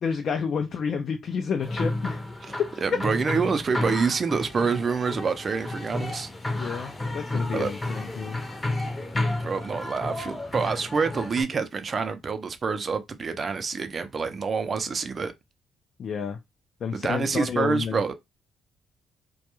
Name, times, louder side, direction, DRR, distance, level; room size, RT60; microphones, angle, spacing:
voice 1, 0.0-2.2 6.5-8.4 16.0-16.4 16.8-18.0, left 6 dB, 60° left, 0.4 m, -30 dB
sound 1, 1.6-11.4, left 2 dB, 20° left, 0.6 m, -32 dB
voice 2, 2.8-6.3 7.5-7.8 9.4-15.3 16.9-18.1, right 5 dB, 40° right, 0.5 m, -27 dB
2.2 x 2.2 x 2.9 m
cardioid pair, 90°, 0 cm